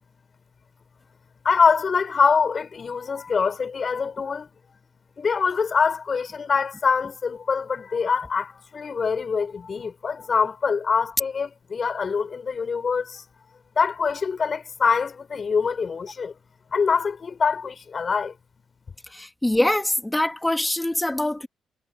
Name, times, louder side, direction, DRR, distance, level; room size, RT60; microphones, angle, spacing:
voice 1, 1.4-4.5 5.2-13.2 13.8-16.3 16.7-18.3, left 5 dB, 40° left, 5.8 m, -24 dB
voice 2, 19.1-21.5, left 1 dB, 10° left, 2.3 m, -24 dB
cardioid pair, 90°, 0 cm